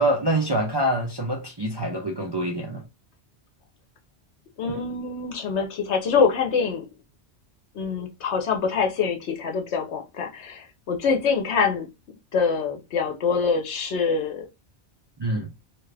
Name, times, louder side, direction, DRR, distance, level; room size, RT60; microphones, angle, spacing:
voice 1, 0.0-2.8 15.2-15.5, right 1 dB, 40° right, 0.4 m, -25 dB
voice 2, 4.6-6.9 7.7-11.9 12.3-14.5, left 5 dB, 80° left, 1.0 m, -25 dB
2.8 x 2.4 x 3.2 m
omnidirectional pair, 1.1 m